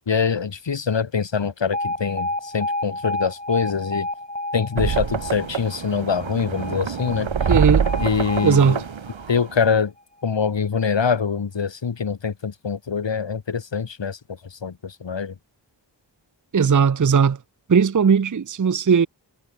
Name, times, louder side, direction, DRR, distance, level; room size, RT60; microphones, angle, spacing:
voice 1, 0.1-4.1 4.5-7.3 8.0-8.8 9.3-9.9 10.2-15.3, left 6 dB, 70° left, 1.5 m, -24 dB
Alarm, 1.7-9.8, left 1 dB, 15° left, 2.6 m, -31 dB
sound 1, 4.8-9.8, right 7 dB, 85° right, 1.2 m, -26 dB
voice 2, 7.5-7.9 8.4-8.8 16.5-17.4 17.7-19.1, right 6 dB, 40° right, 0.7 m, -17 dB
wide cardioid pair, 65°, 45 cm